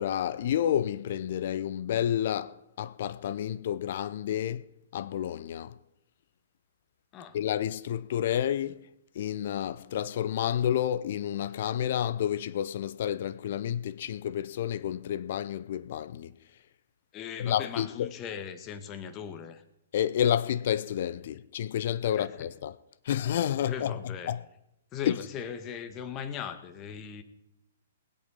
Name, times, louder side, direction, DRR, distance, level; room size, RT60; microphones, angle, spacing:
voice 1, 0.0-4.6 4.9-5.7 7.3-8.8 9.2-16.3 17.4-18.1 19.9-22.7 23.1-23.9 24.3-24.4 25.1-25.2, left 10 dB, 50° left, 0.6 m, -30 dB
voice 2, 17.1-19.6 22.1-22.5 23.7-24.3 24.9-27.2, left 7 dB, 25° left, 1.5 m, -39 dB
20.5 x 8.1 x 5.6 m
figure-of-eight pair, 120°, 0 cm